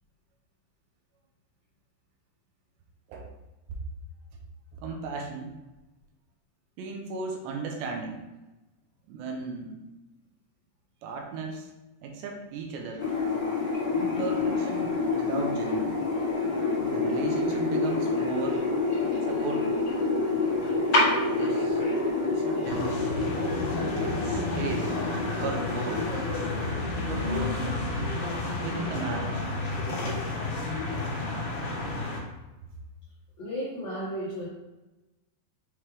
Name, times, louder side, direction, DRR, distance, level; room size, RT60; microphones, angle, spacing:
voice 1, 4.8-5.5 6.8-8.2 9.1-9.8 11.0-11.7 12.0-13.1 13.9-16.0 16.8-18.7 19.3-19.8 21.4-21.8 22.2-23.0 24.0-24.9 25.4-26.1 26.9-27.6 28.6-29.5, right 4 dB, 80° right, 2 dB, 2.9 m, -36 dB
sound 1, 13.0-26.7, left 3 dB, 45° left, 1.4 m, -28 dB
sound 2, 22.6-32.2, left 2 dB, 60° left, 2.2 m, -31 dB
voice 2, 33.4-34.5, equal, 75° left, -8 dB, 1.5 m, -33 dB
7.4 x 3.2 x 4.8 m, 1.0 s
omnidirectional pair, 5.3 m